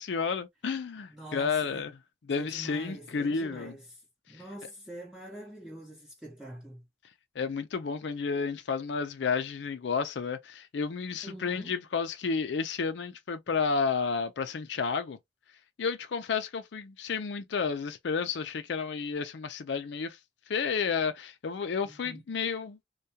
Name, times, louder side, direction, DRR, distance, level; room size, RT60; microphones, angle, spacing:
voice 1, 0.0-2.0 2.3-3.7 7.4-15.2 15.8-20.2 20.5-22.8, left 5 dB, 90° left, 0.4 m, -31 dB
voice 2, 1.1-1.8 2.3-4.0 4.3-6.8 11.2-11.8 21.8-22.2, right 1 dB, 5° right, 0.6 m, -45 dB
2.3 x 2.2 x 2.7 m
head